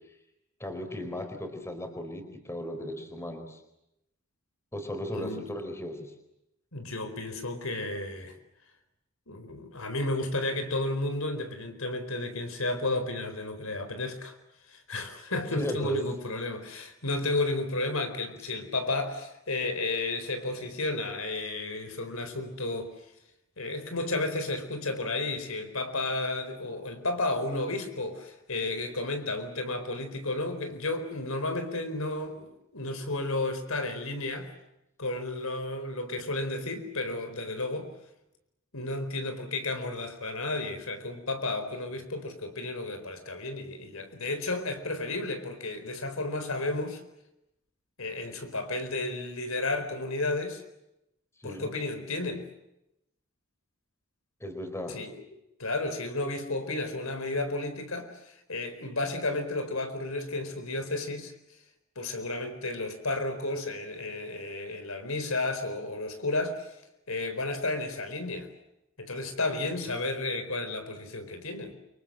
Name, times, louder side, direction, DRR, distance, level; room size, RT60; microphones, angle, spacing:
voice 1, 0.6-3.6 4.7-6.1 15.6-16.0 51.4-51.7 54.4-55.0, left 1 dB, 10° left, 4.6 m, -36 dB
voice 2, 5.1-5.5 6.7-8.3 9.3-14.3 14.6-22.9 23.6-34.5 35.0-37.9 38.7-47.0 48.0-50.6 51.4-52.4 54.9-55.2 55.6-61.3 62.0-66.8 67.1-68.5 69.0-71.8, left 2 dB, 75° left, 4.3 m, -32 dB
29.0 x 25.0 x 7.8 m
head